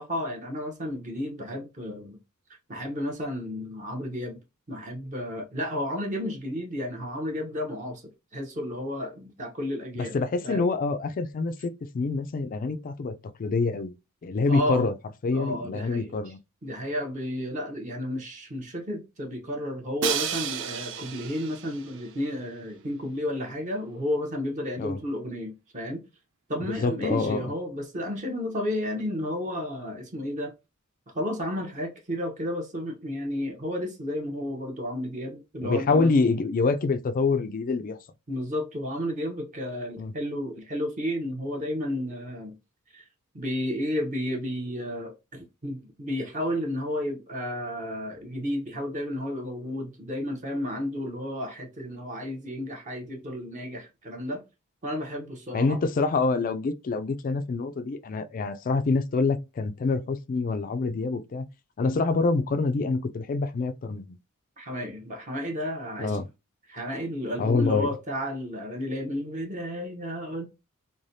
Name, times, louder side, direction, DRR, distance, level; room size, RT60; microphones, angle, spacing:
voice 1, 0.0-2.2 2.7-4.4 4.7-8.0 8.3-10.1 10.4-10.7 14.5-14.9 15.3-16.2 16.6-26.0 26.5-30.5 31.1-36.1 38.3-42.6 42.9-43.0 43.3-54.4 54.8-55.8 64.6-66.2 66.7-70.4, left 1 dB, 35° right, 0.8 m, -32 dB
voice 2, 10.0-13.1 13.4-13.9 14.2-14.9 15.2-16.4 24.8-25.0 26.6-27.5 35.6-38.0 40.0-40.1 55.5-61.5 61.8-64.2 66.0-66.3 67.4-67.9, left 3 dB, 40° left, 0.3 m, -26 dB
Crash cymbal, 20.0-22.0, right 8 dB, 60° right, 0.5 m, -31 dB
3.2 x 2.1 x 2.6 m
head